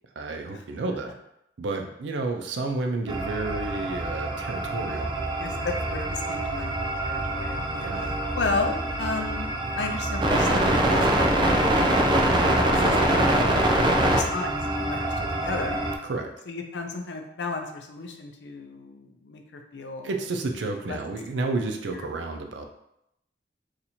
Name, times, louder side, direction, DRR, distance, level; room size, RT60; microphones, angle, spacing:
voice 1, 0.2-1.1 1.6-5.1 7.7-8.1 16.0-16.3 20.0-22.7, right 3 dB, 85° right, 4 dB, 0.5 m, -31 dB
sound 1, 3.1-16.0, right 1 dB, 25° right, 0.4 m, -24 dB
voice 2, 5.4-7.6 7.9-9.5 9.8-11.6 12.2-13.5 14.1-15.8 16.5-20.1 20.8-21.0 21.8-22.0, left 3 dB, 75° left, 4 dB, 0.5 m, -33 dB
2.7 x 2.5 x 4.2 m, 0.80 s
head